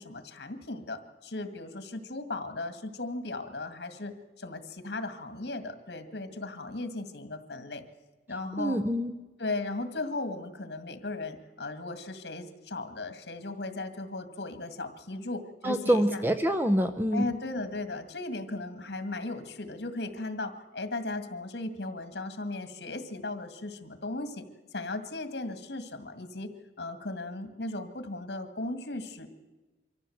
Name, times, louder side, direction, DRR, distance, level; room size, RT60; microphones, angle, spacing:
voice 1, 0.0-7.8 8.3-8.8 9.4-16.2 17.1-24.4 24.7-26.5 26.8-29.3, left 2 dB, 65° left, 9 dB, 2.0 m, -36 dB
voice 2, 8.6-9.1 15.6-17.3, equal, 10° right, 9 dB, 0.6 m, -26 dB
24.0 x 14.5 x 7.9 m, 1.2 s
head